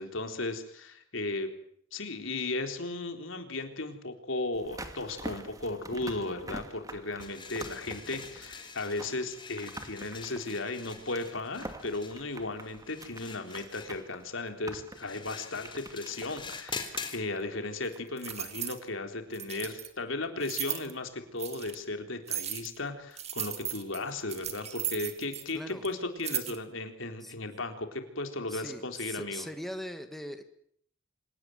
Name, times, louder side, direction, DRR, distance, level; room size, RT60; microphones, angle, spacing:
voice 1, 0.0-1.5 1.9-29.5, left 2 dB, 75° left, 6 dB, 3.9 m, -36 dB
sound 1, 4.5-18.5 18.8-18.9, right 1 dB, 20° right, 2.6 m, -46 dB
sound 2, 7.2-17.2, left 5 dB, 25° left, 3.8 m, -45 dB
sound 3, 17.9-18.8 19.3-19.9 20.4-20.9 21.4-21.8 22.3-22.8 23.2-25.6 25.8-25.9 26.2-26.6, right 10 dB, 35° right, 2.4 m, -36 dB
voice 2, 28.5-30.4, equal, ahead, 7 dB, 1.9 m, -41 dB
27.0 x 18.0 x 9.5 m, 0.66 s
head